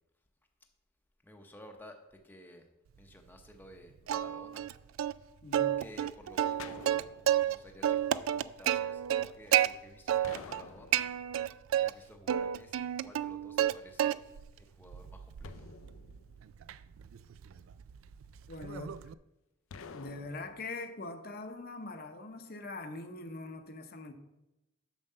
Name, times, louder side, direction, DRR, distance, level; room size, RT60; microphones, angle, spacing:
voice 1, 1.2-2.7 3.0-4.7 5.8-6.8 7.4-11.1 11.8-14.2 14.6-15.7, left 1 dB, 10° left, 3 dB, 0.7 m, -53 dB
Plucked string instrument, 4.1-4.7 5.0-5.1 5.5-7.5 7.8-9.7 10.1-10.6 10.9-11.9 12.3-13.7 14.0-14.5 14.9-19.1, right 11 dB, 75° right, 0.3 m, -30 dB
voice 2, 5.4-5.8 18.5-19.0 19.9-24.1, left 2 dB, 50° left, 6 dB, 0.8 m, -42 dB
sound 1, 6.6-7.8 10.2-11.5 15.4-16.8 19.7-20.7, left 5 dB, 80° left, 0.5 m, -50 dB
7.2 x 6.6 x 5.5 m, 0.94 s
head